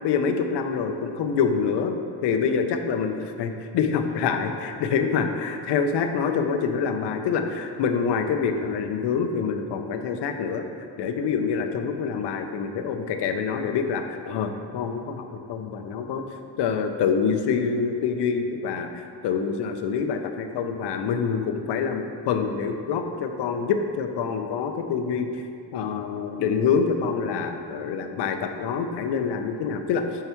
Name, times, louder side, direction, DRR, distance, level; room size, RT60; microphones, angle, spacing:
voice 1, 0.0-10.7 11.0-16.2 16.6-25.3 25.7-30.1, left 6 dB, 70° left, 6 dB, 0.6 m, -26 dB
8.8 x 4.7 x 3.0 m, 2.5 s
cardioid pair, 160°, 43 cm